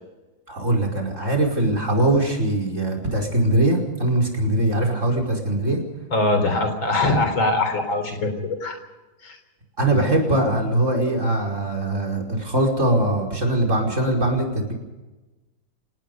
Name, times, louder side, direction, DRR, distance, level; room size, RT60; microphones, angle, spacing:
voice 1, 0.5-5.8 9.8-14.7, right 1 dB, 35° right, 4 dB, 5.4 m, -21 dB
voice 2, 6.1-8.3 8.6-8.8 9.2-9.4, left 2 dB, 65° left, 7 dB, 4.7 m, -22 dB
28.5 x 18.5 x 5.4 m, 1.1 s
omnidirectional pair, 2.3 m